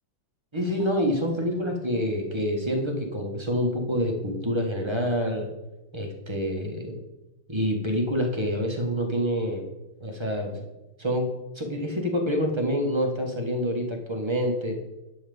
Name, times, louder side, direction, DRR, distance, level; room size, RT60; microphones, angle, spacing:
voice 1, 0.5-5.5 5.9-7.0 7.5-9.6 10.0-10.7 11.0-14.8, equal, 15° right, 2 dB, 1.2 m, -27 dB
11.5 x 4.8 x 7.0 m, 1.0 s
omnidirectional pair, 2.3 m